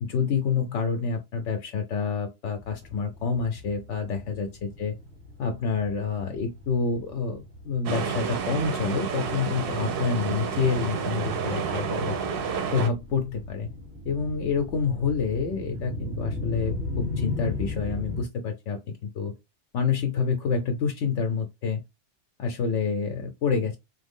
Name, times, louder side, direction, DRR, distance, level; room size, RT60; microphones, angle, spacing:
voice 1, 0.0-4.9 5.4-12.2 12.7-13.7 14.1-19.3 19.7-21.8 22.4-23.8, left 5 dB, 75° left, 0.9 m, -28 dB
sound 1, 2.6-18.2, left 2 dB, 15° right, 0.9 m, -38 dB
sound 2, 7.9-12.9, right 6 dB, 60° right, 0.7 m, -30 dB
3.1 x 2.1 x 3.5 m
omnidirectional pair, 1.3 m